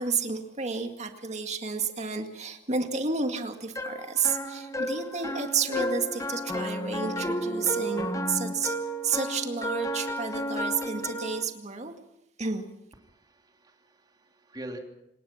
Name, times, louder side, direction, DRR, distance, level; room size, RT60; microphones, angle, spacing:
voice 1, 0.0-8.8 9.0-11.9 12.4-12.6, right 5 dB, 40° right, 5 dB, 2.1 m, -31 dB
sound 1, 3.8-11.4, equal, 20° left, 1.4 m, -32 dB
voice 2, 13.0-14.8, right 1 dB, 25° right, 2 dB, 3.0 m, -44 dB
27.0 x 18.5 x 5.8 m, 0.84 s
head